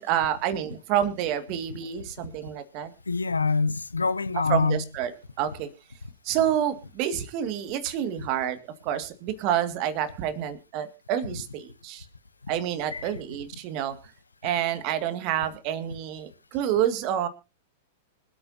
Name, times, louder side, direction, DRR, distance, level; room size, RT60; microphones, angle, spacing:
voice 1, 0.0-2.9 4.5-5.1 5.4-5.7 6.2-8.6 8.8-12.1 12.5-14.0 14.4-17.3, right 10 dB, 45° right, 2.0 m, -28 dB
voice 2, 3.1-4.9 12.9-13.1 14.4-14.6, left 4 dB, 85° left, 0.7 m, -25 dB
25.5 x 8.8 x 2.7 m
figure-of-eight pair, 100°, 0 cm